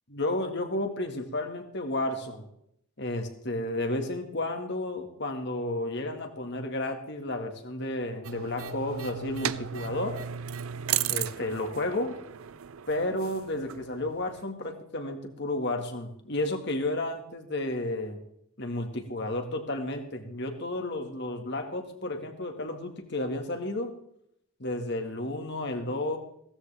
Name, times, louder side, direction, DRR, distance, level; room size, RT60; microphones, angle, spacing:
voice 1, 0.1-2.5 3.0-10.2 11.0-12.2 12.9-18.2 18.6-23.9 24.6-26.2, left 1 dB, 55° left, 5 dB, 1.9 m, -32 dB
sound 1, 8.2-14.4, right 10 dB, 80° right, 0.5 m, -35 dB
16.0 x 14.0 x 3.5 m, 0.73 s
head